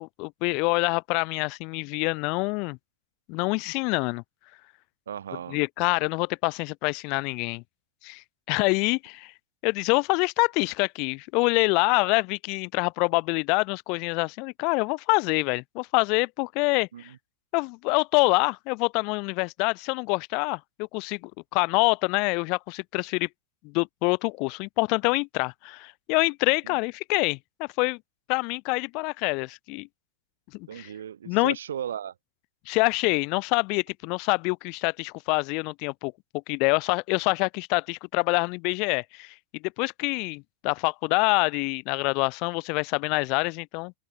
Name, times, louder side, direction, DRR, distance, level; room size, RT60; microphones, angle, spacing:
voice 1, 0.0-2.8 3.3-4.2 5.5-7.6 8.0-9.3 9.6-17.1 17.5-23.3 23.6-28.0 28.3-29.9 30.5-30.9 31.3-31.6 32.7-36.1 36.5-39.3 39.8-43.9, left 31 dB, 45° left, 2.0 m, -26 dB
voice 2, 5.1-5.6 16.9-17.2 26.6-26.8 30.7-32.1, right 9 dB, 65° right, 7.8 m, -36 dB
open air
figure-of-eight pair, 90°, 0 cm